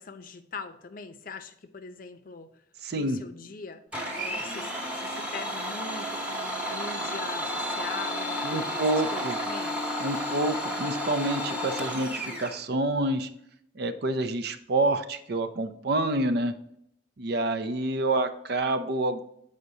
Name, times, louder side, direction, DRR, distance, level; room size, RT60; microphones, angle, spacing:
voice 1, 0.0-2.5 2.9-3.8 4.2-9.8, left 4 dB, 50° left, 9 dB, 0.6 m, -42 dB
voice 2, 2.8-3.2 8.4-9.4 10.0-13.3 13.8-16.5 17.2-19.2, right 2 dB, 55° right, 10 dB, 0.5 m, -28 dB
Domestic sounds home sounds, 3.9-12.6, equal, 5° right, 1.1 m, -32 dB
8.0 x 4.9 x 2.7 m, 0.72 s
head